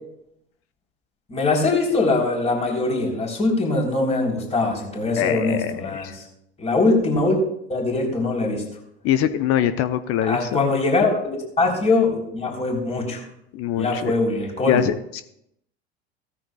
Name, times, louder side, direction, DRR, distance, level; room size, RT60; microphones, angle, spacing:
voice 1, 1.3-6.2 6.6-7.4 7.7-8.6 10.2-11.2 11.6-13.2 13.8-14.8, left 3 dB, 20° left, 0 dB, 3.8 m, -22 dB
voice 2, 5.2-6.1 9.0-10.6 13.5-14.2 14.7-15.2, left 11 dB, 45° left, 12 dB, 0.8 m, -23 dB
16.5 x 13.5 x 2.3 m, 0.75 s
figure-of-eight pair, 75°, 34 cm